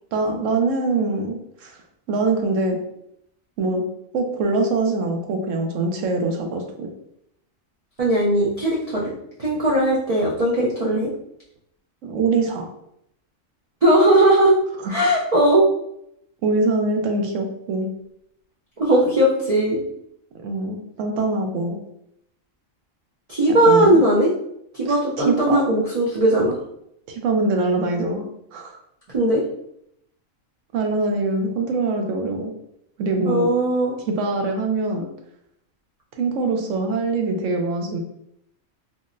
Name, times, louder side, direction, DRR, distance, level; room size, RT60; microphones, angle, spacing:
voice 1, 0.1-1.8 2.1-2.8 3.6-3.8 4.1-6.9 12.0-12.7 14.8-14.9 16.4-17.9 20.4-21.8 23.7-24.0 24.9-25.0 25.2-25.6 27.1-28.3 28.5-28.8 30.7-32.5 33.0-33.5 34.1-35.1 36.2-38.0, right 3 dB, 75° right, 3 dB, 0.9 m, -23 dB
voice 2, 8.0-9.1 9.4-11.1 13.8-14.6 14.9-15.7 18.8-19.8 23.3-24.3 24.7-26.6 29.1-29.4 33.2-34.0, right 1 dB, 50° right, -6 dB, 0.4 m, -18 dB
3.8 x 2.0 x 2.5 m, 0.75 s
omnidirectional pair, 1.4 m